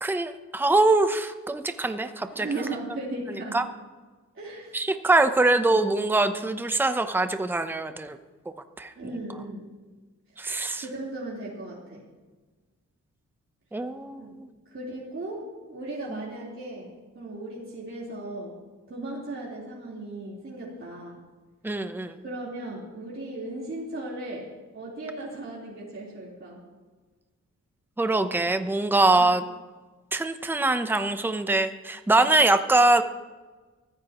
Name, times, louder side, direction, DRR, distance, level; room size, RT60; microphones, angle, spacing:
voice 1, 0.0-2.5 3.5-3.6 4.7-8.2 8.8-8.9 10.4-10.8 13.7-14.5 16.1-16.2 21.6-22.2 28.0-29.4 30.1-33.0, right 2 dB, 5° right, 8 dB, 0.8 m, -23 dB
voice 2, 2.3-3.6 4.3-4.9 5.7-5.8 9.0-9.7 10.8-12.0 14.2-14.4 14.7-15.4 15.7-18.5 18.9-21.2 22.2-24.5 24.7-26.6 29.1-29.3, right 2 dB, 40° right, -6 dB, 3.9 m, -36 dB
23.0 x 15.0 x 3.0 m, 1.3 s
wide cardioid pair, 120°, 30 cm